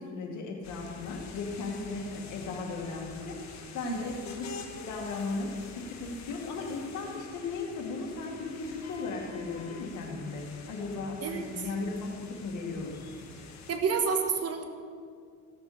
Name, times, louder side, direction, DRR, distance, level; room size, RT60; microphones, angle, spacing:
voice 1, 0.0-13.0, left 3 dB, 80° left, 0 dB, 2.1 m, -36 dB
sound 1, 0.6-13.8, left 5 dB, 65° left, 1.4 m, -47 dB
voice 2, 13.7-14.6, right 5 dB, 55° right, 5 dB, 1.3 m, -29 dB
16.0 x 6.3 x 5.1 m, 2.1 s
cardioid pair, 90°, 30 cm